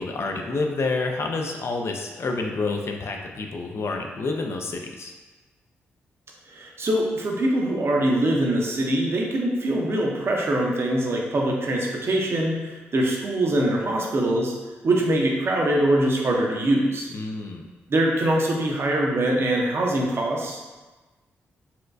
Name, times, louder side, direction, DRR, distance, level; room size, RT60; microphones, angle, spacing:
voice 1, 0.0-5.1 17.1-17.7, left 3 dB, 55° left, 2 dB, 0.5 m, -28 dB
voice 2, 6.5-14.5 14.8-17.1 17.9-20.6, right 1 dB, 50° right, -1 dB, 0.7 m, -23 dB
4.2 x 2.2 x 2.6 m, 1.2 s
supercardioid pair, 45°, 5 cm